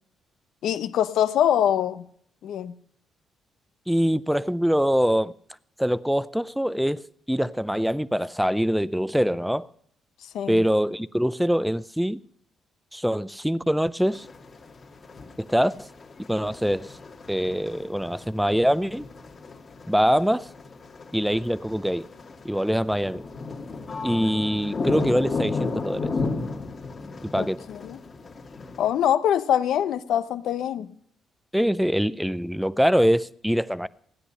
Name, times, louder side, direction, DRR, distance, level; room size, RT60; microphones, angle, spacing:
voice 1, 0.6-2.0 2.4-2.7 10.3-10.6 27.4-28.0 28.8-30.9, left 10 dB, 75° left, 0.7 m, -24 dB
voice 2, 3.9-5.3 5.8-7.0 7.3-9.7 10.5-12.2 12.9-14.3 15.4-15.9 16.3-16.9 17.3-19.1 19.9-20.5 21.1-22.0 22.4-23.2 24.0-26.1 27.2-27.6 31.5-33.9, equal, ahead, 0.5 m, -24 dB
sound 1, 14.0-28.9, left 3 dB, 40° left, 2.1 m, -34 dB
16.0 x 9.9 x 5.5 m
cardioid pair, 90°, 0 cm